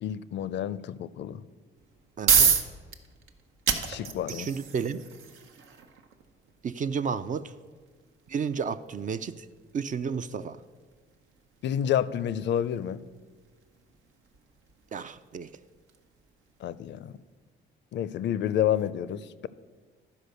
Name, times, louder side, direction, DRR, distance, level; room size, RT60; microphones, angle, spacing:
voice 1, 0.0-1.4 3.9-4.5 11.6-13.0 16.6-17.2 17.9-19.5, left 10 dB, 65° left, 16 dB, 0.5 m, -29 dB
sound 1, 1.8-16.7, right 7 dB, 85° right, 0.9 m, -32 dB
voice 2, 2.2-2.5 4.3-5.1 6.6-7.5 8.3-9.5 9.7-10.6 14.9-15.5, right 6 dB, 40° right, 12 dB, 0.4 m, -32 dB
12.0 x 5.0 x 6.6 m, 1.5 s
cardioid pair, 90°, 20 cm